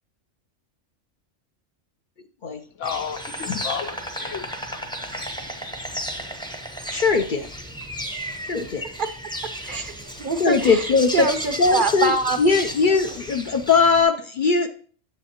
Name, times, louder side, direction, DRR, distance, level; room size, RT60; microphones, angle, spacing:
voice 1, 2.8-5.3 5.8-5.9 6.2-6.3, left 7 dB, 80° left, 9 dB, 1.0 m, -33 dB
Insect, 2.8-14.0, equal, 5° left, 0.6 m, -34 dB
voice 2, 6.9-7.5 8.4-8.8 10.4-11.3 11.6-14.7, left 5 dB, 55° left, 7 dB, 0.6 m, -20 dB
voice 3, 9.7-12.6 12.9-13.0, right 4 dB, 55° right, 8 dB, 0.7 m, -25 dB
9.8 x 7.9 x 2.9 m, 0.43 s
omnidirectional pair, 1.3 m